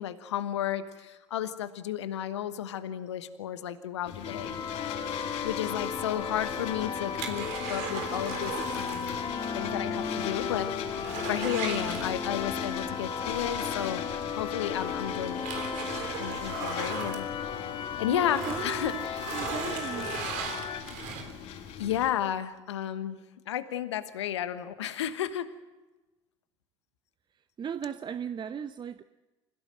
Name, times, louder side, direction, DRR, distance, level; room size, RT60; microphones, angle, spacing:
voice 1, 0.0-4.6 5.0-9.2 9.5-10.7 11.2-14.0 14.3-17.6 18.0-19.3 19.7-19.8 21.8-23.2 23.5-25.5, left 10 dB, 75° left, 1.2 m, -33 dB
sound 1, 4.1-22.1, left 8 dB, 60° left, 5.4 m, -40 dB
sound 2, 4.2-20.8, left 6 dB, 35° left, 1.9 m, -35 dB
sound 3, 6.3-9.2 9.5-9.6 10.1-10.2 10.5-12.6 14.0-14.1 14.7-17.9 18.2-21.5 22.1-22.2, right 7 dB, 60° right, 3.7 m, -38 dB
voice 2, 18.1-20.1 27.6-29.0, right 7 dB, 30° right, 0.7 m, -37 dB
26.5 x 16.0 x 7.8 m
figure-of-eight pair, 65°, 15 cm